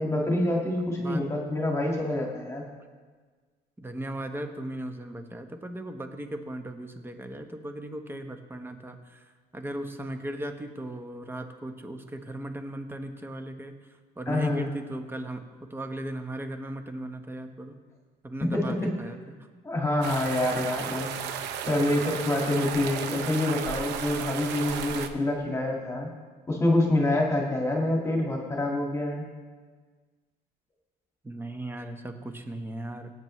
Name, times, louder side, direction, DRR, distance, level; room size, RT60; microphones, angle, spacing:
voice 1, 0.0-2.6 14.3-14.7 18.4-18.9 19.6-21.1 21.7-26.1 26.5-29.3, left 1 dB, 15° left, -1 dB, 1.8 m, -26 dB
voice 2, 3.8-9.2 9.5-13.7 14.2-17.8 18.2-19.4 31.2-33.2, right 1 dB, 15° right, 6 dB, 1.1 m, -37 dB
sound 1, 20.0-25.1, right 8 dB, 90° right, 0.8 m, -34 dB
17.5 x 9.1 x 3.2 m, 1.5 s
cardioid pair, 110°, 17 cm